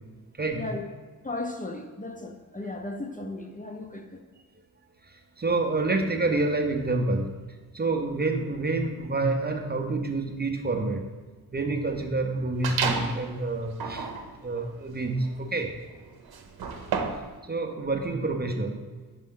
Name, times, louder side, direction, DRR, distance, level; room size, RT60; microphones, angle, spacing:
voice 1, 0.4-0.7 5.4-7.4 7.7-11.1 11.5-14.1 14.4-15.7 17.5-18.8, right 2 dB, 25° right, 4 dB, 0.6 m, -28 dB
voice 2, 1.2-4.2, left 2 dB, 20° left, 3 dB, 0.6 m, -36 dB
sound 1, 12.6-13.2 13.7-17.3, right 5 dB, 70° right, 0.8 m, -32 dB
5.5 x 5.2 x 3.7 m, 1.3 s
cardioid pair, 80°, 37 cm